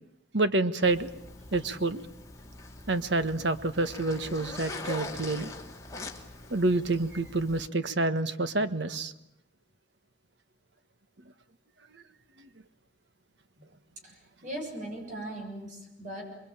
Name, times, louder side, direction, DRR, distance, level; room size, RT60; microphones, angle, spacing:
voice 1, 0.3-1.1 1.5-2.0 2.9-5.5 6.5-9.1, right 2 dB, 65° right, 11 dB, 1.5 m, -28 dB
Zipper (clothing), 0.8-7.7, left 2 dB, 15° left, 2.8 m, -43 dB
voice 2, 14.0-16.4, right 1 dB, 40° right, 1 dB, 7.1 m, -39 dB
27.5 x 22.5 x 8.9 m, 0.84 s
head